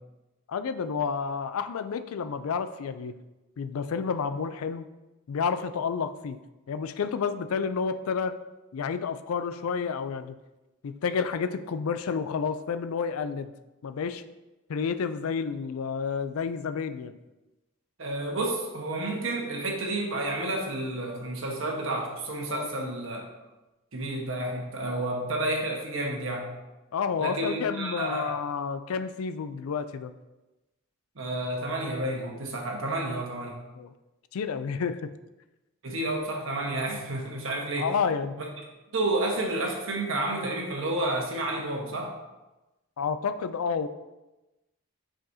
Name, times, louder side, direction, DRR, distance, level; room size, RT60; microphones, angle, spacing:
voice 1, 0.5-3.2 3.6-4.9 5.3-6.4 6.7-8.4 8.7-10.4 10.8-13.5 13.8-14.2 14.7-17.2 22.5-22.7 26.9-30.1 33.7-33.9 34.3-35.1 37.8-38.4 43.0-43.9, left 6 dB, 85° left, 11 dB, 0.4 m, -30 dB
voice 2, 18.0-23.2 23.9-26.5 27.2-28.3 31.2-33.6 35.8-37.9 38.4-38.5 38.9-42.1, right 2 dB, 65° right, 0 dB, 1.2 m, -30 dB
7.5 x 5.0 x 2.7 m, 1.0 s
head